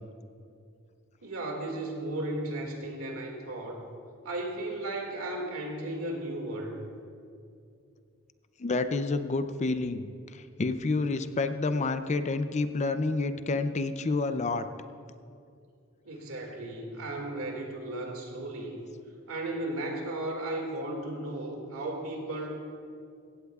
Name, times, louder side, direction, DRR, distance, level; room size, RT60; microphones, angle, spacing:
voice 1, 1.2-3.8 4.2-6.8 16.0-18.8 19.3-22.5, right 1 dB, 85° right, 1 dB, 2.1 m, -35 dB
voice 2, 8.6-14.7, left 3 dB, 35° left, 10 dB, 0.4 m, -29 dB
16.5 x 16.0 x 2.4 m, 2.4 s
head